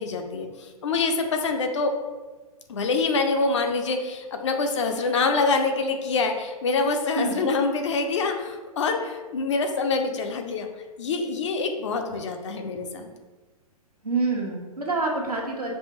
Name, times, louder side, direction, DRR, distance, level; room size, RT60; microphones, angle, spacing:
voice 1, 0.0-1.9 2.7-10.7 11.0-13.1, left 4 dB, 50° left, 4 dB, 0.5 m, -25 dB
voice 2, 14.0-15.7, right 3 dB, 80° right, -1 dB, 1.0 m, -26 dB
5.3 x 2.4 x 3.0 m, 1.3 s
figure-of-eight pair, 115°, 19 cm